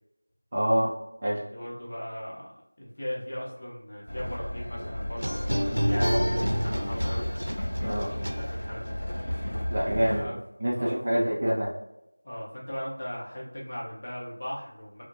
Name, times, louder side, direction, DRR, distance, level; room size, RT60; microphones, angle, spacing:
voice 1, 0.5-0.9 1.2-1.4 5.9-6.3 7.8-8.1 9.7-11.7, equal, 20° right, -6 dB, 0.4 m, -27 dB
voice 2, 1.5-2.5 2.8-5.4 5.6-7.3 7.9-9.2 10.0-10.4 10.7-11.0 12.2-15.0, equal, 30° left, -5 dB, 0.7 m, -38 dB
Train, 4.1-10.2, left 1 dB, 65° left, 0.4 m, -32 dB
sound 1, 5.2-8.9, equal, 85° right, 0.5 m, -29 dB
2.9 x 2.1 x 2.7 m, 0.86 s
figure-of-eight pair, 175°, 0 cm